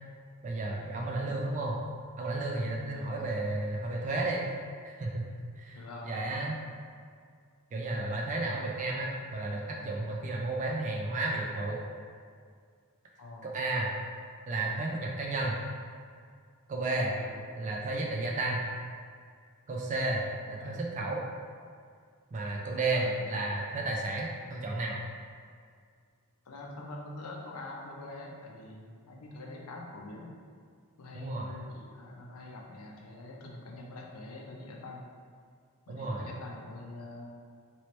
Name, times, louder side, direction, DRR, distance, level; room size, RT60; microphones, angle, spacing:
voice 1, 0.4-1.8 2.2-4.4 4.8-5.2 5.6-5.8 6.0-6.6 7.7-11.8 13.4-13.9 14.5-15.6 16.7-17.1 17.6-18.6 19.7-20.2 20.5-21.2 22.3-25.0 31.1-31.6 35.9-36.3, right 2 dB, 35° right, -2 dB, 0.3 m, -32 dB
voice 2, 2.9-3.4 5.7-6.2 13.2-13.5 17.1-17.4 20.6-20.8 23.0-23.2 26.5-30.3 31.0-35.0 35.9-37.3, left 2 dB, 80° left, -1 dB, 0.6 m, -44 dB
3.0 x 2.9 x 3.1 m, 2.1 s
head